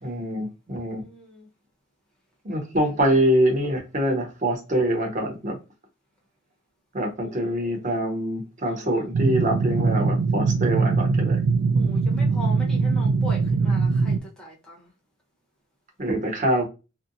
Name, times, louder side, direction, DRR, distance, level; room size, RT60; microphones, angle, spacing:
voice 1, 0.0-1.0 2.4-5.6 6.9-11.4 16.0-16.6, right 1 dB, 40° right, 0.7 m, -24 dB
voice 2, 0.9-1.5 2.8-3.0 7.2-7.8 8.7-9.1 11.7-14.9, left 1 dB, 5° left, 0.9 m, -41 dB
sound 1, 9.1-14.2, right 4 dB, 90° right, 0.3 m, -22 dB
2.6 x 2.1 x 2.5 m
head